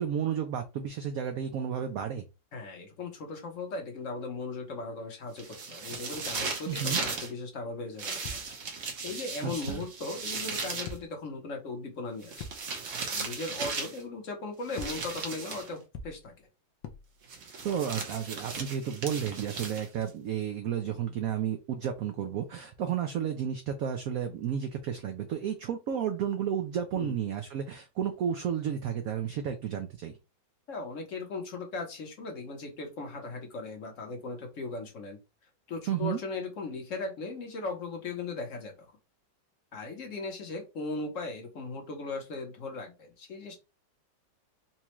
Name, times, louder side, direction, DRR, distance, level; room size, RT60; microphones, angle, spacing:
voice 1, 0.0-2.2 6.7-7.0 9.4-9.8 17.6-30.2 35.9-36.2, right 8 dB, 80° right, 6 dB, 0.7 m, -32 dB
voice 2, 2.5-8.4 9.0-12.5 13.1-16.5 26.9-27.2 30.7-35.2 35.7-38.9 39.7-43.6, left 3 dB, 50° left, 3 dB, 1.1 m, -38 dB
sound 1, 5.4-7.3 8.0-11.0 12.2-14.0 14.7-15.7 17.3-20.1, right 4 dB, 50° right, 1.1 m, -36 dB
sound 2, 8.2-8.8 9.6-10.2 10.8-11.5 12.4-12.9 13.2-13.3 14.8-15.3 15.9-16.5 16.8-17.3, left 3 dB, 75° left, 1.3 m, -44 dB
4.2 x 2.3 x 3.0 m, 0.27 s
omnidirectional pair, 2.1 m